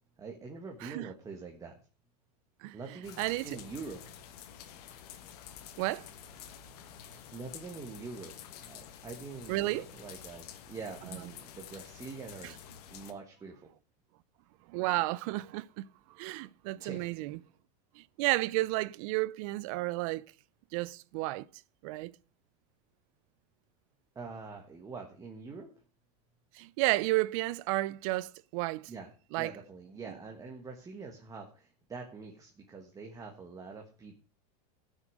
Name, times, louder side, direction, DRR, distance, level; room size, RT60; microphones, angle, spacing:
voice 1, 0.2-1.8 2.7-4.0 7.0-12.6 12.9-13.7 16.8-17.1 24.1-25.7 28.9-29.1 29.4-34.2, right 4 dB, 15° right, 1.5 m, -45 dB
sound 1, 3.0-13.1, left 9 dB, 75° left, 1.6 m, -49 dB
voice 2, 3.2-3.6 5.8-6.1 9.5-9.8 12.4-12.5 14.7-17.4 18.0-20.2 20.7-21.5 21.8-22.1 26.5-28.9 29.3-29.5, right 19 dB, 55° right, 0.5 m, -32 dB
15.0 x 6.4 x 6.2 m
supercardioid pair, 145°, 20 cm